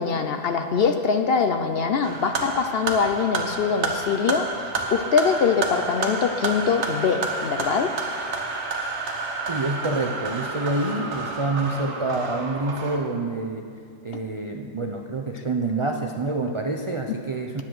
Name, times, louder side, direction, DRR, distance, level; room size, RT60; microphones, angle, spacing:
voice 1, 0.0-4.5 4.9-7.9, left 5 dB, 60° left, 6 dB, 0.7 m, -23 dB
sound 1, 2.0-13.0, right 3 dB, 75° right, 1.5 m, -30 dB
voice 2, 9.5-13.7 14.0-17.6, right 2 dB, 50° right, 3 dB, 0.3 m, -27 dB
10.0 x 8.6 x 6.2 m, 2.4 s
omnidirectional pair, 1.4 m